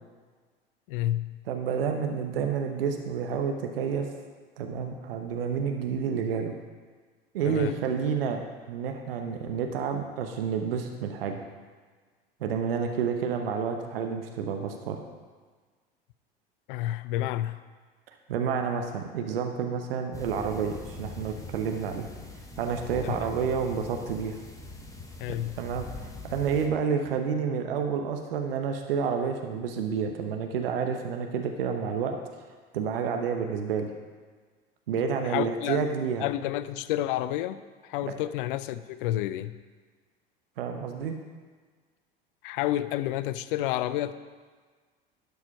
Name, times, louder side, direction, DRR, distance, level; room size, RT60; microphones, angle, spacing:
voice 1, 0.9-1.4 7.4-7.7 16.7-17.6 23.0-23.2 25.2-25.6 35.2-35.8 36.2-37.6 37.8-39.6 42.4-44.1, left 13 dB, 65° left, 14 dB, 0.5 m, -30 dB
voice 2, 1.5-4.1 4.6-6.5 7.3-8.4 8.7-11.4 12.4-15.0 18.3-22.1 22.6-24.4 25.6-25.9 26.3-32.2 32.7-33.9 34.9-36.2 38.1-38.2 40.6-41.1, right 6 dB, 75° right, 4 dB, 0.9 m, -29 dB
sound 1, 20.1-26.7, left 2 dB, 10° left, 1.2 m, -42 dB
11.5 x 4.8 x 5.5 m, 1.5 s
hypercardioid pair, 75°, 29 cm